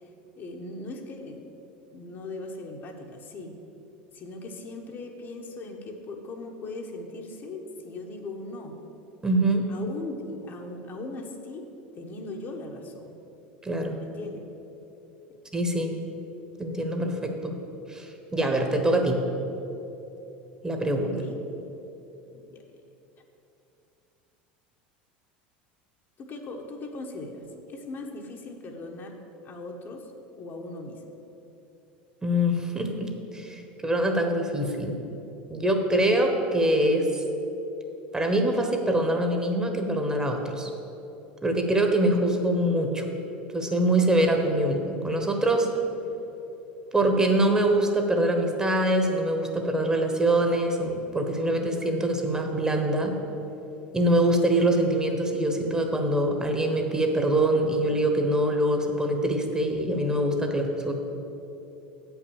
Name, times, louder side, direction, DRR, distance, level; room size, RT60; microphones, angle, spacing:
voice 1, 0.4-1.4 1.9-3.5 4.1-8.8 9.7-11.6 12.0-13.1 14.0-14.4 21.0-21.4 22.3-22.6 26.2-29.2 29.4-30.1 30.4-31.0, left 2 dB, 45° left, 2 dB, 1.1 m, -39 dB
voice 2, 9.2-9.6 13.6-14.0 15.5-15.9 16.6-17.5 17.9-19.2 20.6-21.1 32.2-35.0 35.5-37.2 38.1-40.7 41.4-43.1 43.5-45.7 46.9-53.1 53.9-60.9, right 1 dB, 15° right, 4 dB, 1.2 m, -24 dB
8.0 x 5.7 x 7.2 m, 3.0 s
hypercardioid pair, 90°, 5 cm